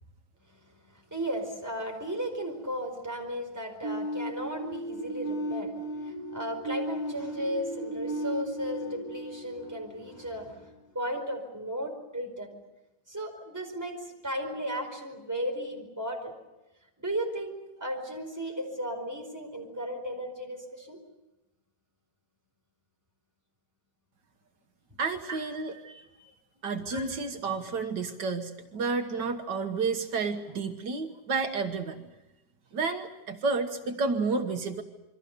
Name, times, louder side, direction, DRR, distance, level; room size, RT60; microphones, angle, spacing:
voice 1, 0.8-5.7 6.0-12.5 13.1-16.3 17.0-21.0 25.3-25.9 26.2-26.3 26.9-27.1, equal, 10° right, 3 dB, 4.8 m, -35 dB
sound 1, 3.8-10.6, right 1 dB, 30° left, 3.7 m, -35 dB
voice 2, 25.0-26.1 26.6-32.1 32.7-34.8, right 4 dB, 80° right, 6 dB, 2.0 m, -31 dB
28.5 x 24.0 x 6.8 m, 1.0 s
omnidirectional pair, 1.8 m